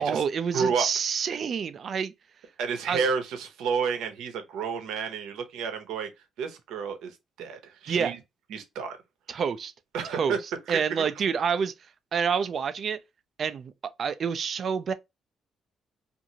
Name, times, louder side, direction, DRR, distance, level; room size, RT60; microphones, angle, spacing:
voice 1, 0.0-2.1 2.9-3.0 7.9-8.2 9.3-9.7 10.1-10.4 10.7-11.7 12.1-13.0 13.4-14.9, right 6 dB, 55° right, 0.4 m, -28 dB
voice 2, 0.5-0.9 2.6-6.1 6.4-8.2 8.5-9.0 9.9-10.4 10.7-11.1, right 6 dB, 90° right, 0.7 m, -30 dB
2.7 x 2.5 x 2.8 m
cardioid pair, 90°, 0 cm